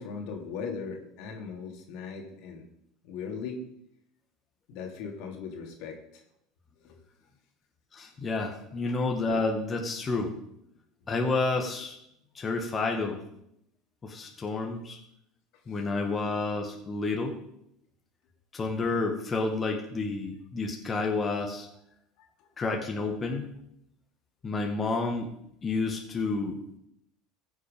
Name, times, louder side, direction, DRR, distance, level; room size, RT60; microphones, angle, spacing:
voice 1, 0.0-2.7 3.0-3.6 4.7-6.2 6.8-7.0 15.7-15.8 22.2-22.5, left 5 dB, 65° left, 2 dB, 2.6 m, -39 dB
voice 2, 7.9-10.3 11.1-12.0 12.3-13.2 14.0-15.0 15.7-17.3 18.5-21.7 22.6-23.5 24.4-25.3 25.6-26.6, left 3 dB, 25° left, 2 dB, 1.8 m, -30 dB
15.0 x 6.5 x 5.3 m, 0.77 s
supercardioid pair, 95°, 0 cm